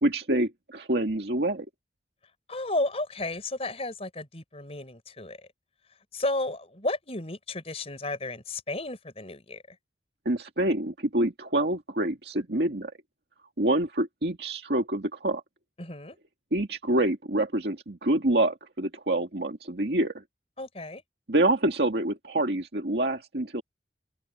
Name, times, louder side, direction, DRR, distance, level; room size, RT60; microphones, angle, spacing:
voice 1, 0.0-1.7 10.3-12.9 13.6-15.4 16.5-20.2 21.3-23.6, right 1 dB, 65° right, 2.1 m, -26 dB
voice 2, 2.5-5.4 6.1-9.8 15.8-16.2 20.6-21.0, left 2 dB, 35° left, 4.5 m, -33 dB
open air
head